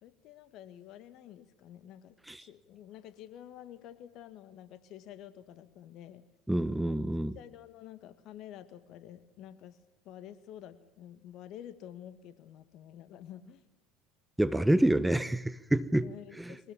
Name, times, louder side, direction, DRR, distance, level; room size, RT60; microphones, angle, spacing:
voice 1, 0.0-6.2 6.7-7.0 7.3-9.8 10.0-13.6 16.0-16.7, left 11 dB, 55° left, 11 dB, 1.9 m, -49 dB
voice 2, 6.5-7.3 14.4-16.1 16.4-16.5, right 1 dB, 5° right, 14 dB, 0.9 m, -27 dB
24.0 x 19.0 x 7.3 m, 0.94 s
figure-of-eight pair, 65°, 0 cm